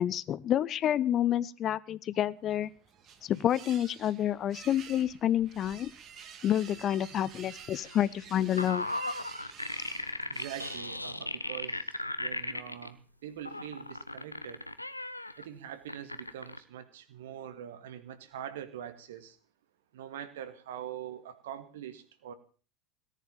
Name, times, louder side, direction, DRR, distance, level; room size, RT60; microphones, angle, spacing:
voice 1, 0.0-2.7 3.2-5.9 6.4-8.9, left 11 dB, 35° left, 19 dB, 0.7 m, -29 dB
sound 1, 2.5-11.3, right 7 dB, 40° right, 2.4 m, -49 dB
sound 2, 7.8-12.9 13.4-15.4 15.9-16.6, left 1 dB, 90° left, 0.9 m, -36 dB
voice 2, 10.3-14.6 15.4-19.4 19.9-22.3, right 10 dB, 65° right, 11 dB, 2.0 m, -43 dB
18.0 x 10.5 x 7.0 m, 0.38 s
figure-of-eight pair, 75°, 0 cm